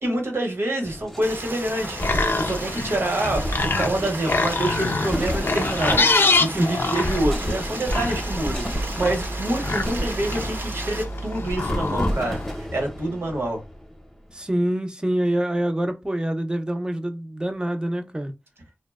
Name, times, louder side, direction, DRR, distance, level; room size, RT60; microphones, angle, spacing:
voice 1, 0.0-2.0 2.4-6.1 6.4-8.7 8.9-13.6, right 1 dB, 85° right, 1.0 m, -27 dB
sound 1, 0.8-14.4, equal, 5° left, 0.8 m, -31 dB
Stream, 1.2-11.0, right 2 dB, 60° right, 0.6 m, -35 dB
sound 2, 1.7-12.6, left 3 dB, 65° left, 0.4 m, -26 dB
voice 2, 14.3-18.3, right 1 dB, 20° right, 0.5 m, -25 dB
2.7 x 2.1 x 2.3 m
wide cardioid pair, 50°, 4 cm